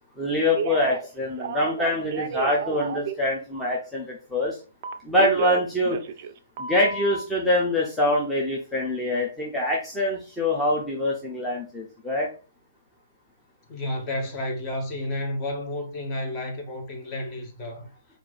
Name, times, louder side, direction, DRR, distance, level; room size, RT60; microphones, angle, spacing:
voice 1, 0.2-4.6 5.0-6.0 6.6-12.3, left 1 dB, 5° left, 0.7 m, -24 dB
Telephone, 0.5-1.1 1.4-3.1 4.8-6.3 6.6-7.2, right 7 dB, 40° right, 0.4 m, -31 dB
voice 2, 13.7-17.9, left 1 dB, 25° left, 1.1 m, -31 dB
4.4 x 2.6 x 3.9 m
figure-of-eight pair, 125°, 0 cm